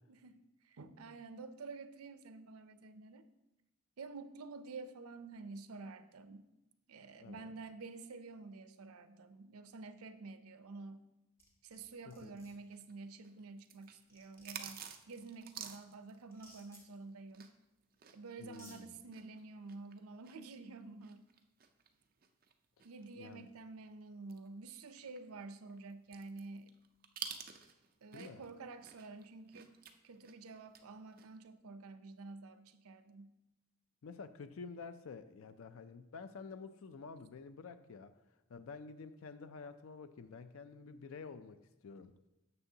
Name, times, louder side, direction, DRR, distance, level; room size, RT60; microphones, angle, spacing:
voice 1, 0.1-3.3 4.0-6.5 6.9-11.1 11.6-17.5 18.1-21.2 22.8-26.7 28.0-29.7 30.0-33.3, right 3 dB, 90° right, 11 dB, 0.5 m, -50 dB
voice 2, 7.2-7.6 12.1-12.4 18.4-19.0 23.2-23.5 28.1-28.4 34.0-38.2 38.5-42.1, left 4 dB, 75° left, 11 dB, 0.4 m, -50 dB
sound 1, 11.4-11.8 12.1-12.5 13.7-13.8 14.1-15.0 16.3-16.8 17.9-18.0 18.4-18.8, equal, 10° left, 1.1 m, -59 dB
sound 2, 12.7-17.6 17.9-23.5 23.9-24.0 24.3-28.5 28.8-30.8 31.1-31.4, right 8 dB, 40° right, 0.5 m, -50 dB
9.5 x 6.8 x 2.8 m, 0.95 s
head